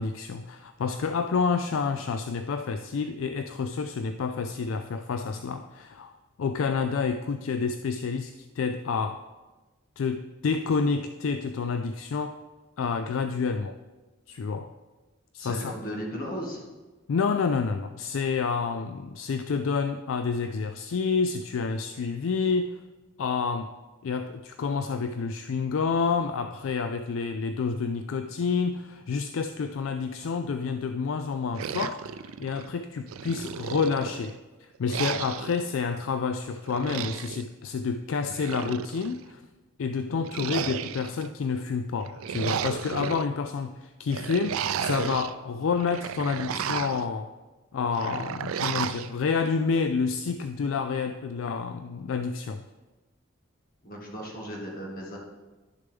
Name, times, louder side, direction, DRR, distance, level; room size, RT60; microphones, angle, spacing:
voice 1, 0.0-9.2 10.0-12.4 12.8-13.8 14.3-14.7 15.3-15.7 17.1-22.8 23.2-23.7 24.0-32.1 32.4-39.4 39.8-47.3 47.7-52.6, left 5 dB, 70° left, 9 dB, 0.4 m, -29 dB
voice 2, 15.4-16.6 53.8-55.2, equal, 45° left, -1 dB, 1.8 m, -36 dB
sound 1, 31.5-32.7 33.1-34.3 34.9-35.6 36.7-37.4 38.2-39.2 40.2-41.3 42.0-43.2 44.1-45.3 45.7-47.1 47.9-49.1, right 8 dB, 85° right, 0.4 m, -33 dB
11.0 x 6.6 x 3.5 m, 1.2 s
head